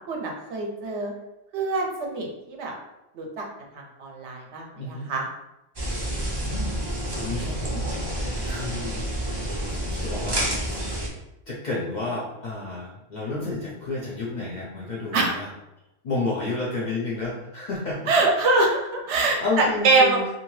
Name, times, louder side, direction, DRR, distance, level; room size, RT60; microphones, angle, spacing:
voice 1, 0.1-1.1 1.5-2.7 3.2-3.4 3.7-5.2 15.1-15.3 18.1-20.2, right 3 dB, 70° right, 1 dB, 0.8 m, -24 dB
voice 2, 4.8-5.1 6.4-6.8 7.2-9.1 9.7-11.0 11.5-15.5 16.0-18.1 19.4-20.3, left 3 dB, 50° left, -5 dB, 0.5 m, -31 dB
sound 1, 5.8-11.1, right 1 dB, 30° right, 0.4 m, -29 dB
2.7 x 2.5 x 3.1 m, 0.92 s
omnidirectional pair, 1.3 m